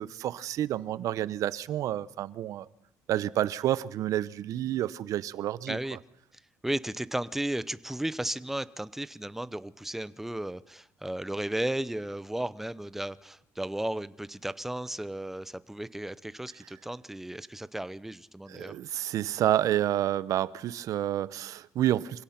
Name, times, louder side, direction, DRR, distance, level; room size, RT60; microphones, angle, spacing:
voice 1, 0.0-2.7 3.1-5.8 18.5-22.2, right 12 dB, 60° right, 0.8 m, -29 dB
voice 2, 5.7-6.0 6.6-18.8, right 1 dB, 5° right, 0.7 m, -34 dB
26.0 x 17.0 x 5.9 m
cardioid pair, 125°, 6 cm